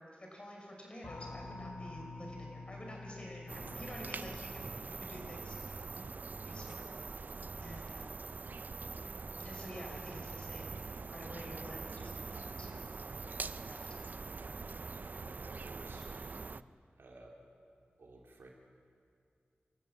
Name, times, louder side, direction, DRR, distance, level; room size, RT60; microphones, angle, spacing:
voice 1, 0.0-5.9 6.4-6.9 7.6-8.3 9.4-12.9 13.4-14.1, equal, 30° left, 0 dB, 5.6 m, -49 dB
sound 1, 1.0-7.4, left 3 dB, 75° left, 1.5 m, -49 dB
sound 2, 3.5-16.6, right 4 dB, 50° right, 0.5 m, -43 dB
voice 2, 15.1-16.4 17.0-17.3 18.0-18.5, right 2 dB, 85° right, -1 dB, 3.3 m, -55 dB
27.5 x 14.0 x 7.4 m, 2.3 s
wide cardioid pair, 85°, 4 cm